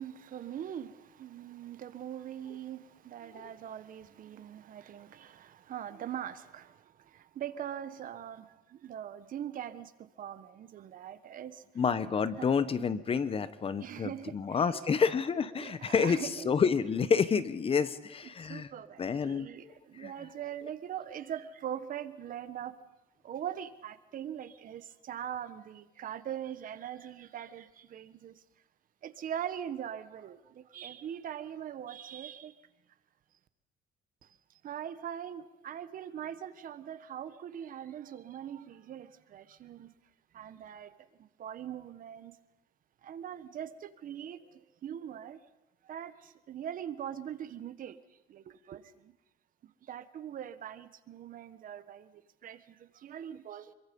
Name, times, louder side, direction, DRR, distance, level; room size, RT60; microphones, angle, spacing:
voice 1, 0.0-11.6 12.4-12.5 13.8-15.0 15.6-16.5 18.5-22.8 23.2-28.4 29.0-32.6 34.2-34.4 34.6-39.9 40.3-42.3 43.0-45.4 45.8-48.0 48.3-49.1 49.6-53.7, right 10 dB, 55° right, 1.4 m, -42 dB
voice 2, 11.8-16.2 16.4-18.7 19.0-19.5 20.0-20.1, left 6 dB, 35° left, 1.1 m, -29 dB
26.0 x 23.0 x 5.4 m
cardioid pair, 110°, 17 cm